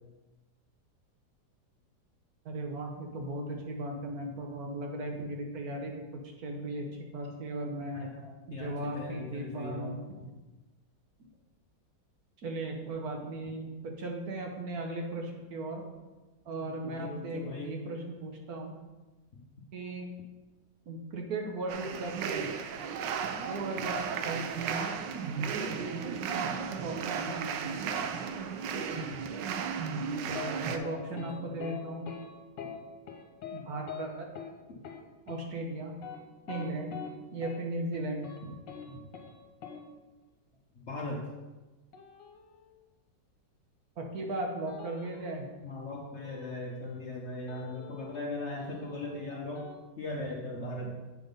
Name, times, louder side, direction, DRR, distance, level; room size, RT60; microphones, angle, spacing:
voice 1, 2.4-6.0 6.4-8.1 8.5-10.3 12.4-15.8 16.4-18.7 19.7-20.1 20.9-22.6 23.4-24.9 25.5-26.0 26.3-27.8 28.7-29.1 30.2-32.1 33.5-34.3 35.3-36.0 36.5-36.9 37.3-38.6 38.9-39.0 44.0-45.5, right 2 dB, 60° right, 2 dB, 1.3 m, -37 dB
voice 2, 7.9-10.0 16.8-17.8 30.6-31.7 40.7-41.3 45.6-49.7 50.0-50.9, left 2 dB, 50° left, -1 dB, 0.9 m, -39 dB
sound 1, 21.7-30.8, right 6 dB, 80° right, 1.3 m, -34 dB
sound 2, 30.3-30.5 30.8-31.3 31.6-31.8 32.1-32.2 32.6-32.8 33.1-33.6 33.9-34.0 34.4-34.5 34.8-35.0 35.3-35.4 35.9-37.1 37.4-37.6 37.9-38.4 38.7-38.8 39.1-39.3 39.6-39.8 41.9-42.7 44.7-45.4 46.2-47.1 47.5-48.3 48.6-49.8, left 8 dB, 75° left, 1.6 m, -44 dB
7.9 x 3.8 x 5.2 m, 1.2 s
omnidirectional pair, 1.9 m